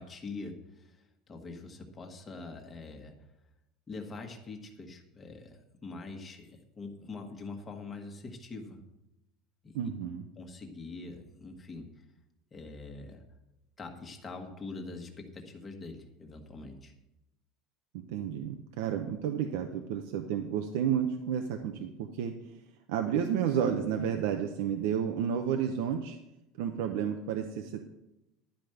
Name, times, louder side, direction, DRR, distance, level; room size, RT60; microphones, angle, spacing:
voice 1, 0.0-3.1 3.9-8.8 9.6-9.8 10.4-12.0 12.5-13.3 13.8-16.9, left 3 dB, 15° left, 3 dB, 1.4 m, -44 dB
voice 2, 9.7-10.2 17.9-22.3 22.9-26.2 26.6-27.8, right 8 dB, 75° right, 5 dB, 0.8 m, -31 dB
11.5 x 5.2 x 7.8 m, 0.92 s
cardioid pair, 165°, 0 cm